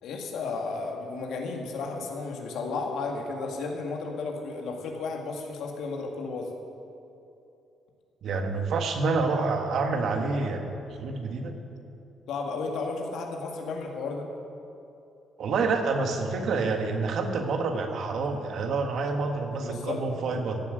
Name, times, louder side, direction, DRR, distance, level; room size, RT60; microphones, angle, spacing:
voice 1, 0.0-6.5 12.3-14.3 19.6-20.0, left 4 dB, 80° left, 2 dB, 2.0 m, -33 dB
voice 2, 8.2-11.5 15.4-20.6, right 4 dB, 65° right, 5 dB, 1.5 m, -28 dB
15.0 x 7.5 x 7.9 m, 2.8 s
cardioid pair, 110°, 0 cm